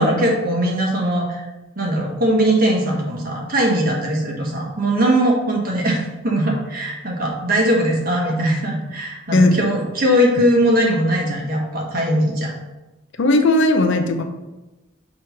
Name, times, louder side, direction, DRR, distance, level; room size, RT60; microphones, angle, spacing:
voice 1, 0.0-1.5 1.8-12.5, right 1 dB, 45° right, -1 dB, 1.3 m, -20 dB
voice 2, 13.2-14.2, left 2 dB, 60° left, 7 dB, 0.6 m, -17 dB
6.3 x 3.1 x 5.6 m, 1.0 s
head